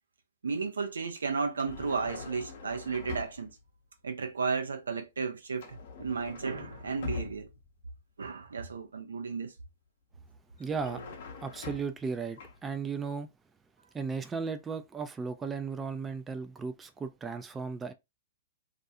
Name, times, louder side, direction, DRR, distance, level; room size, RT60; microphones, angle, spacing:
voice 1, 0.4-3.5 4.0-7.5 8.2-9.5, right 5 dB, 80° right, 0.5 m, -33 dB
sound 1, 1.5-3.6 5.6-7.7 10.6-12.1 12.4-12.6, left 5 dB, 60° left, 0.6 m, -43 dB
voice 2, 10.6-11.0 11.4-13.3 13.9-17.9, right 5 dB, 15° right, 0.3 m, -35 dB
2.4 x 2.2 x 2.7 m
hypercardioid pair, 110°, 0 cm